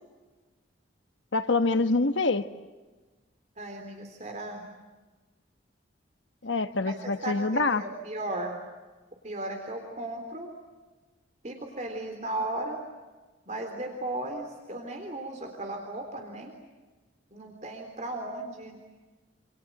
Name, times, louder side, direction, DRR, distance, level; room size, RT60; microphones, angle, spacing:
voice 1, 1.3-2.5 6.4-7.8, left 3 dB, 75° left, 10 dB, 1.2 m, -25 dB
voice 2, 3.6-4.6 6.9-8.5 9.2-10.5 11.4-12.8 13.5-16.5 17.3-18.8, right 2 dB, 40° right, 4 dB, 3.6 m, -36 dB
28.0 x 27.5 x 7.7 m, 1.3 s
head